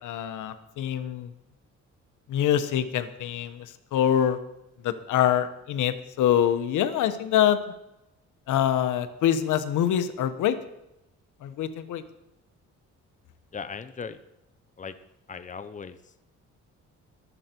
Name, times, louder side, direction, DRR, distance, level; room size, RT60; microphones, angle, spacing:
voice 1, 0.0-1.3 2.3-4.4 4.8-7.6 8.5-10.6 11.4-12.0, left 10 dB, 80° left, 11 dB, 1.2 m, -25 dB
voice 2, 13.5-14.2 14.8-14.9 15.3-16.0, left 6 dB, 25° left, 11 dB, 0.9 m, -37 dB
22.5 x 8.2 x 4.5 m, 0.88 s
cardioid pair, 90°, 30 cm